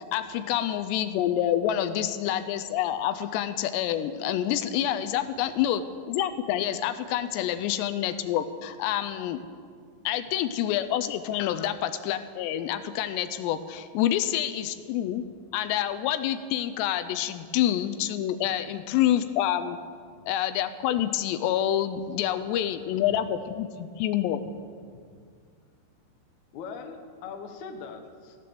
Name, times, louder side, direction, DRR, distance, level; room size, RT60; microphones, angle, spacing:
voice 1, 0.1-5.8 6.1-9.4 10.1-15.2 15.5-19.8 20.3-24.5, left 11 dB, 85° left, 10 dB, 2.7 m, -27 dB
voice 2, 22.5-23.2 24.9-25.4 26.5-28.4, left 5 dB, 65° left, 5 dB, 1.9 m, -42 dB
16.5 x 11.0 x 6.9 m, 2.1 s
omnidirectional pair, 5.0 m